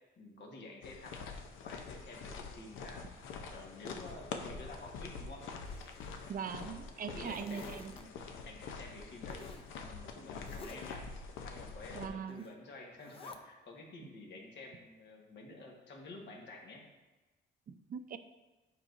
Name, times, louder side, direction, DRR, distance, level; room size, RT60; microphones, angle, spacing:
voice 1, 0.2-3.0 3.5-5.5 6.4-7.6 7.9-8.2 8.4-11.1 11.4-16.8, left 2 dB, 65° left, 0 dB, 1.4 m, -50 dB
sound 1, 0.8-12.1, left 5 dB, 85° left, 0.6 m, -45 dB
Zipper (clothing), 5.5-6.5 6.9-8.0 9.3-9.7 10.3-11.0 12.3-12.6 13.0-13.4, left 2 dB, 30° left, 0.7 m, -52 dB
voice 2, 6.3-7.9 11.9-12.5 17.7-18.2, right 7 dB, 45° right, 9 dB, 0.5 m, -41 dB
8.9 x 4.7 x 2.6 m, 1.1 s
cardioid pair, 90°, 20 cm